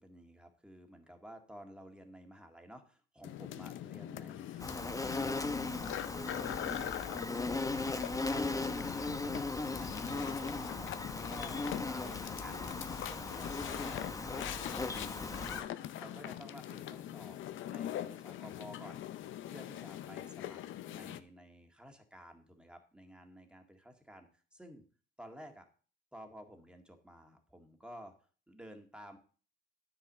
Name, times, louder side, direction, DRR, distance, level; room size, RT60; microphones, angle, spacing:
voice 1, 0.0-5.8 6.0-12.8 13.1-20.6 20.9-24.8 25.2-25.7 26.1-28.1 28.5-29.2, equal, 5° right, 4 dB, 1.9 m, -53 dB
sound 1, 3.2-21.2, left 12 dB, 75° left, 0.6 m, -43 dB
Insect, 4.6-15.6, left 3 dB, 15° left, 0.9 m, -37 dB
9.9 x 4.9 x 7.3 m, 0.40 s
cardioid pair, 90°, 20 cm